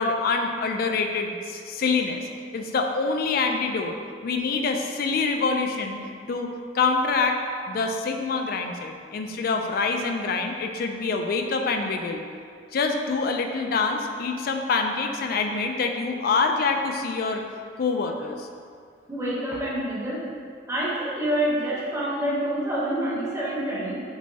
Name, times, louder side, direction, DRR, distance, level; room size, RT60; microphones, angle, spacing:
voice 1, 0.0-2.2 2.5-3.9 4.2-6.0 6.3-12.2 12.7-17.4 17.8-18.5, left 4 dB, 50° left, 4 dB, 0.3 m, -26 dB
voice 2, 19.1-20.2 20.7-24.0, right 1 dB, 15° right, -7 dB, 0.8 m, -27 dB
6.0 x 2.2 x 2.7 m, 2.2 s
head